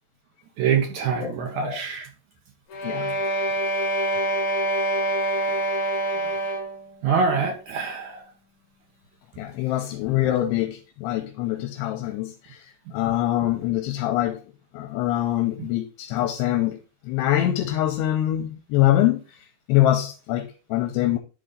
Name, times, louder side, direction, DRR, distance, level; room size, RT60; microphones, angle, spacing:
voice 1, 0.6-2.1 7.0-8.2 15.6-15.7, right 6 dB, 70° right, 1.8 m, -25 dB
voice 2, 1.2-1.8 2.8-3.2 9.4-14.4 14.7-16.8 17.0-19.4 19.7-21.2, left 13 dB, 80° left, 2.7 m, -24 dB
sound 1, 2.7-6.9, right 1 dB, 55° left, 2.4 m, -25 dB
10.5 x 4.1 x 3.7 m
omnidirectional pair, 4.8 m